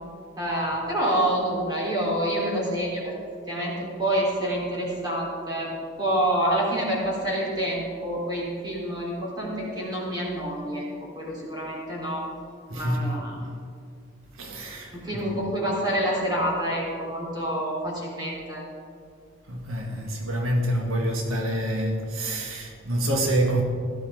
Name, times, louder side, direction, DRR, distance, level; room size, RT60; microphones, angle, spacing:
voice 1, 0.4-3.1 3.5-3.7 4.0-5.7 6.0-10.9 11.2-12.2 12.7-13.3 14.9-18.6, right 1 dB, 20° right, 3.8 m, -27 dB
voice 2, 12.7-13.2 14.3-15.3 19.5-23.6, right 1 dB, 80° right, 1.4 m, -27 dB
17.0 x 12.5 x 3.8 m
head